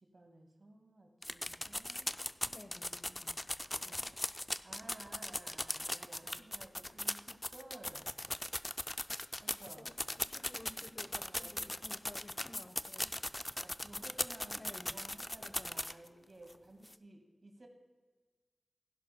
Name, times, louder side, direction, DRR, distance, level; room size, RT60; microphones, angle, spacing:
voice 1, 0.0-2.2 3.7-4.2 4.4-8.1 9.4-9.9 11.1-11.8 13.6-17.7, right 2 dB, 55° right, 3 dB, 1.9 m, -55 dB
sound 1, 1.2-16.1 16.5-16.6 16.9-17.0, left 1 dB, 20° left, 0.4 m, -39 dB
voice 2, 2.4-3.4 9.8-13.1 14.5-15.0 15.4-15.8, left 1 dB, 45° left, 7 dB, 1.0 m, -54 dB
16.0 x 10.5 x 2.3 m, 1.3 s
wide cardioid pair, 60°, 0 cm